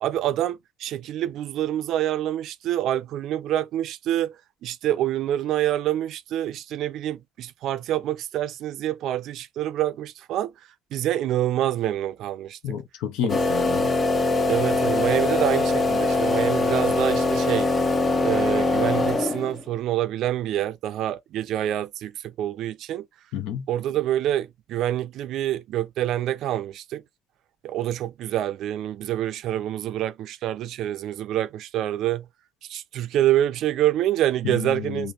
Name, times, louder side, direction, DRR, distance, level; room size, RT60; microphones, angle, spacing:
voice 1, 0.0-4.3 4.6-10.5 10.9-12.6 13.2-13.3 14.5-17.7 18.2-23.1 23.7-27.0 27.6-32.3 32.7-35.1, right 12 dB, 65° right, 0.4 m, -26 dB
voice 2, 12.6-13.9 23.3-23.7 34.4-35.1, left 9 dB, 70° left, 0.6 m, -30 dB
sound 1, 13.3-19.6, left 2 dB, 40° left, 0.8 m, -22 dB
3.4 x 2.7 x 2.8 m
hypercardioid pair, 50°, 0 cm